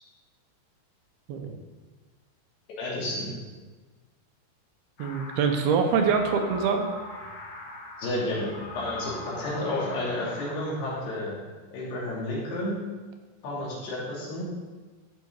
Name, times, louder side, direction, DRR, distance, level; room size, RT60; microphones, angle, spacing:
voice 1, 2.8-3.4 8.0-8.5 8.7-11.4 11.7-12.8 13.4-14.4, left 1 dB, 90° left, -6 dB, 5.2 m, -31 dB
sound 1, 5.0-11.0, left 2 dB, 55° left, 2.4 m, -41 dB
voice 2, 5.0-6.9, right 6 dB, 80° right, 5 dB, 2.9 m, -24 dB
14.5 x 6.2 x 4.8 m, 1.3 s
omnidirectional pair, 4.5 m